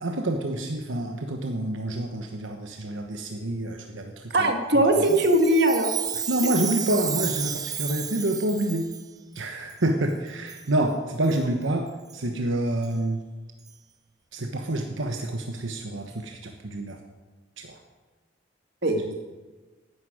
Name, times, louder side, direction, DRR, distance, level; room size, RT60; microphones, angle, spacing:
voice 1, 0.0-4.5 5.0-5.1 6.3-8.9 9.3-13.2 14.3-17.0 17.6-17.8 18.9-19.0, right 1 dB, 80° right, 3 dB, 1.2 m, -28 dB
voice 2, 4.3-5.9 18.8-18.9, right 1 dB, 55° right, 4 dB, 1.9 m, -20 dB
Chime, 5.0-9.0 9.7-9.8 10.5-10.7 11.2-11.4 12.1-12.2 12.8-12.9 13.7-13.8, right 8 dB, 20° right, 0.6 m, -32 dB
11.5 x 9.9 x 9.3 m, 1.3 s
head